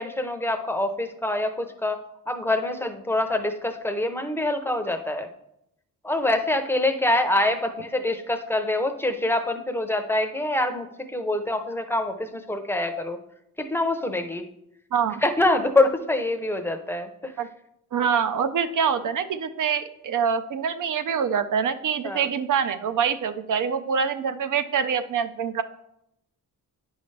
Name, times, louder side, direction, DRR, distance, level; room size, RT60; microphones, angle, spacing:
voice 1, 0.0-2.0 2.3-5.3 6.0-13.2 13.6-14.4 15.2-17.3 22.0-22.3, left 2 dB, 5° left, 6 dB, 0.6 m, -25 dB
voice 2, 14.9-15.2 17.4-17.5 17.9-25.6, right 7 dB, 60° right, 11 dB, 0.6 m, -25 dB
9.5 x 5.6 x 3.2 m, 0.80 s
cardioid pair, 110°, 35 cm